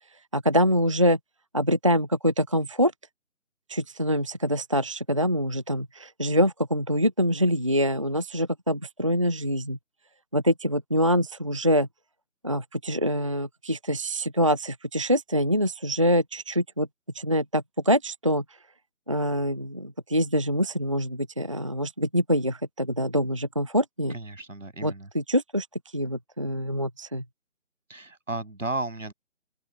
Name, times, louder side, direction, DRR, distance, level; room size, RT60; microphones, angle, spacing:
voice 1, 0.3-1.2 1.5-2.9 3.7-9.8 10.3-11.9 12.4-16.9 17.1-18.4 19.1-24.2 24.8-25.7 25.9-27.2, equal, 25° right, 0.5 m, -25 dB
voice 2, 24.1-25.1 27.9-29.1, right 2 dB, 80° right, 7.9 m, -34 dB
open air
figure-of-eight pair, 155°, 38 cm